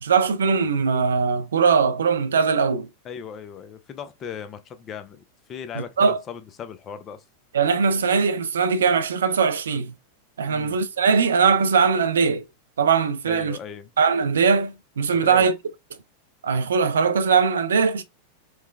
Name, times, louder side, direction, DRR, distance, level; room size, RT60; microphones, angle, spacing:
voice 1, 0.0-2.9 5.7-6.2 7.5-9.9 10.4-12.4 12.8-13.6 14.0-15.5 16.4-18.0, right 5 dB, 65° right, 0.5 m, -20 dB
voice 2, 3.0-5.2 5.5-7.2 10.5-10.8 13.3-13.9 15.2-15.5, left 7 dB, 30° left, 0.5 m, -37 dB
4.5 x 2.2 x 2.3 m
figure-of-eight pair, 90°, 0 cm